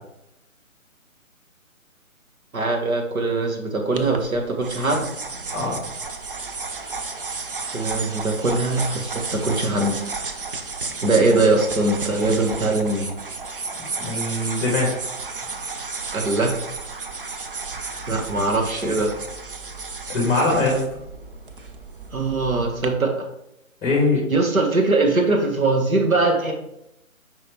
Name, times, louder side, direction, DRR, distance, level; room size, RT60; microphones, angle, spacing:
voice 1, 2.5-5.1 7.7-10.0 11.0-13.1 16.1-16.5 18.1-19.1 22.1-23.2 24.3-26.5, right 2 dB, 75° right, 1 dB, 1.6 m, -21 dB
sound 1, 3.9-22.8, right 4 dB, 40° right, 0.5 m, -33 dB
voice 2, 14.0-14.9 17.7-18.1 20.1-20.8 23.8-24.2, left 2 dB, 15° left, -2 dB, 1.8 m, -22 dB
5.6 x 5.3 x 3.1 m, 0.82 s
figure-of-eight pair, 145°, 42 cm